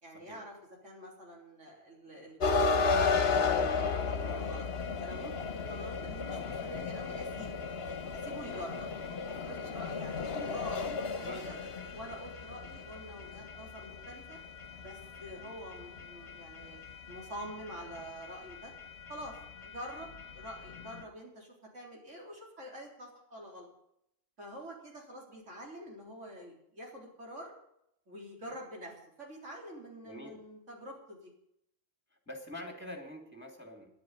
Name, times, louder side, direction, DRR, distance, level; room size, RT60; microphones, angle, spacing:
voice 1, 0.0-0.5 0.8-4.6 5.0-5.3 5.7-7.6 8.1-8.9 9.3-11.6 11.9-14.4 14.8-16.8 17.1-18.7 19.1-23.7 24.4-27.5 28.1-31.3, equal, 85° right, -1 dB, 4.1 m, -46 dB
sound 1, 2.4-21.0, left 4 dB, 55° left, 1.4 m, -35 dB
voice 2, 11.2-11.5 15.4-15.5 30.0-30.4 32.3-33.9, equal, 10° left, 4 dB, 2.7 m, -45 dB
11.0 x 8.4 x 9.3 m, 0.76 s
omnidirectional pair, 1.2 m